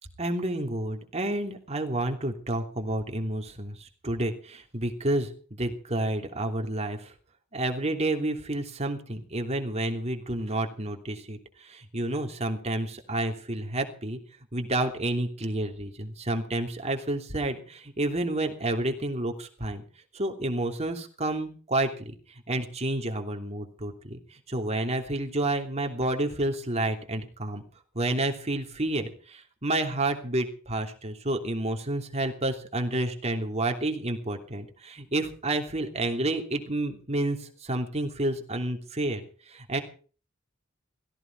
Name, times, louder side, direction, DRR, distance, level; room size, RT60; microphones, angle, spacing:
voice 1, 0.2-5.3 5.6-7.1 7.5-11.4 11.7-14.2 14.5-19.8 20.1-22.1 22.5-24.2 24.5-27.6 27.9-37.4 37.6-39.2 39.5-39.8, right 1 dB, 35° right, 4 dB, 3.0 m, -30 dB
16.5 x 16.0 x 4.7 m, 0.39 s
head